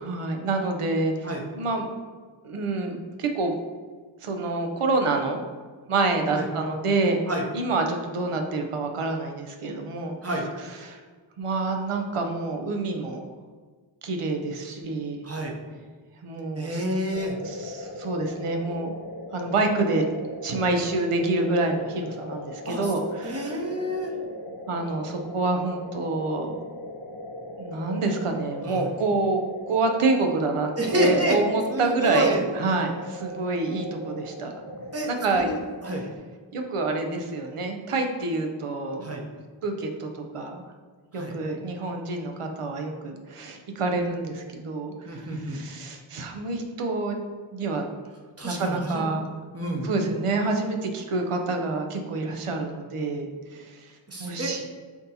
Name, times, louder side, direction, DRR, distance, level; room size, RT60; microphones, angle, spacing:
voice 1, 0.0-1.3 1.5-1.9 2.4-3.6 4.2-5.4 5.9-7.2 7.5-10.2 10.8-11.0 11.4-13.3 14.0-15.2 16.2-16.8 17.4-18.9 19.3-20.1 20.4-23.6 24.7-26.5 27.6-29.4 29.7-34.5 35.1-35.5 35.9-36.0 36.5-39.2 39.6-40.6 41.1-47.2 47.5-47.9 48.4-49.3 49.8-53.9 54.2-54.6, right 3 dB, 85° right, 4 dB, 0.6 m, -27 dB
voice 2, 15.2-15.5 16.6-17.4 22.6-22.9 23.2-24.1 28.7-28.9 30.8-31.4 31.7-32.4 34.9-35.5 35.8-36.1 39.0-39.2 41.1-41.3 45.1-45.6 48.4-49.1 49.5-49.9 54.1-54.6, right 1 dB, 30° right, 0 dB, 0.7 m, -28 dB
sound 1, 17.1-36.2, left 1 dB, 50° left, 0.5 m, -39 dB
5.8 x 2.7 x 2.7 m, 1.5 s
wide cardioid pair, 50°, 50 cm